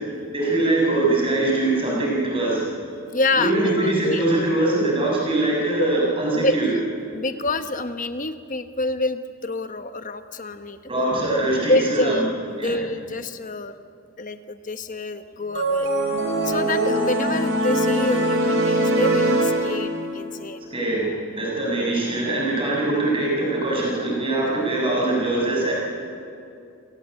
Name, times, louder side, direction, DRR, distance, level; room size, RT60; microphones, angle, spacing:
voice 1, 0.3-2.6 3.4-6.7 10.9-12.2 12.6-12.8 20.7-25.7, right 2 dB, 25° right, -4 dB, 7.2 m, -22 dB
voice 2, 3.1-4.2 6.3-6.7 7.1-10.8 11.7-13.7 14.2-15.9 16.4-20.6, left 2 dB, 35° left, 9 dB, 1.1 m, -27 dB
sound 1, 15.5-20.2, right 1 dB, 60° right, 4.6 m, -22 dB
28.5 x 18.0 x 8.1 m, 2.5 s
head